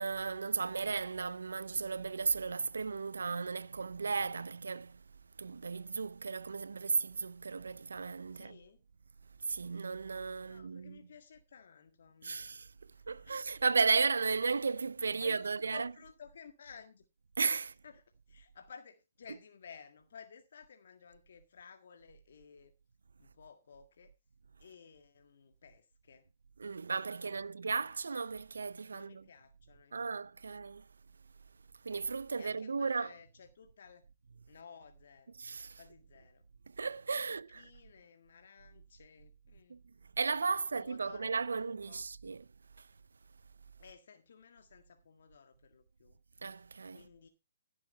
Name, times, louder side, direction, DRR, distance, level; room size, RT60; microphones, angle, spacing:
voice 1, 0.0-5.0 5.4-8.6 9.4-11.0 12.2-12.7 13.1-15.9 17.4-17.8 26.6-29.2 29.9-30.9 31.8-33.1 35.4-35.8 36.7-37.7 39.7-39.8 40.2-42.5 42.8-42.9 46.4-47.0, right 4 dB, 75° right, 0.6 m, -35 dB
voice 2, 8.3-8.8 10.4-12.6 12.9-13.4 15.2-17.1 17.8-22.7 23.2-24.1 24.6-26.3 27.2-27.6 28.9-30.6 32.4-34.0 34.5-35.4 35.7-36.5 37.5-39.8 40.7-42.0 43.8-46.2 46.9-47.3, left 6 dB, 60° left, 1.7 m, -55 dB
15.5 x 7.4 x 4.2 m
figure-of-eight pair, 140°, 0 cm